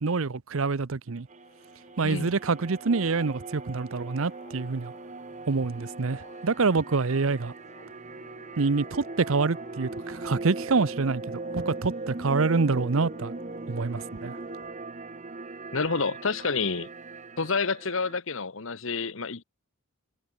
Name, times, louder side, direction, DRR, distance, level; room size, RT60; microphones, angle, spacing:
voice 1, 0.0-1.3 2.0-4.9 5.5-7.5 8.6-11.2 11.5-13.3 13.7-14.4, right 4 dB, 70° right, 0.7 m, -26 dB
sound 1, 1.3-15.4, left 2 dB, 35° left, 4.3 m, -54 dB
sound 2, 1.3-18.2, right 3 dB, 35° right, 1.0 m, -40 dB
voice 2, 15.7-16.9 17.4-19.4, left 4 dB, 65° left, 1.2 m, -28 dB
head